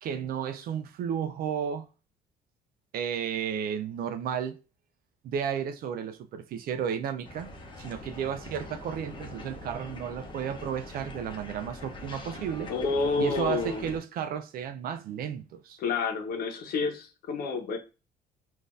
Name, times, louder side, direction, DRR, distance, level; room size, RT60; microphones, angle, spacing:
voice 1, 0.0-1.9 2.9-4.6 5.2-7.5 7.8-12.7 13.2-15.8, right 8 dB, 60° right, 0.4 m, -33 dB
sound 1, 7.2-14.0, left 2 dB, 30° left, 0.8 m, -43 dB
voice 2, 12.7-13.8 15.8-17.8, left 4 dB, 65° left, 0.9 m, -29 dB
3.8 x 2.6 x 2.5 m
cardioid pair, 110°, 17 cm